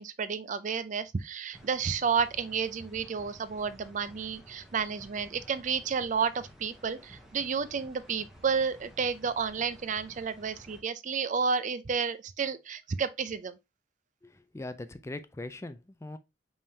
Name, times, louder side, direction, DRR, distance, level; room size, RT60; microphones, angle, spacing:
voice 1, 0.0-13.6, right 6 dB, 45° right, 0.4 m, -31 dB
sound 1, 1.5-10.8, equal, ahead, 1.0 m, -53 dB
voice 2, 14.2-16.2, left 2 dB, 15° left, 0.4 m, -41 dB
5.4 x 3.5 x 2.7 m
head